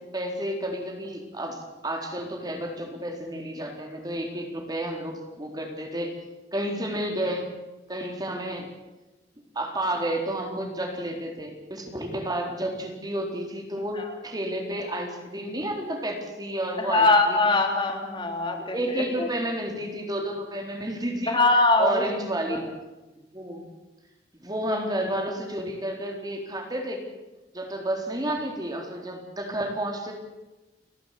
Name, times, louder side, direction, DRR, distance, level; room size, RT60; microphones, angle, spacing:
voice 1, 0.1-1.6 1.8-6.2 6.5-7.5 7.9-8.7 9.5-17.5 18.7-21.4 21.8-22.7 23.3-23.7 24.3-27.0 27.5-30.1, right 1 dB, 20° right, 2 dB, 4.1 m, -31 dB
voice 2, 16.8-19.3 21.3-22.0 22.5-22.6, left 2 dB, 30° left, 3 dB, 3.3 m, -22 dB
29.5 x 12.5 x 8.5 m, 1.1 s
head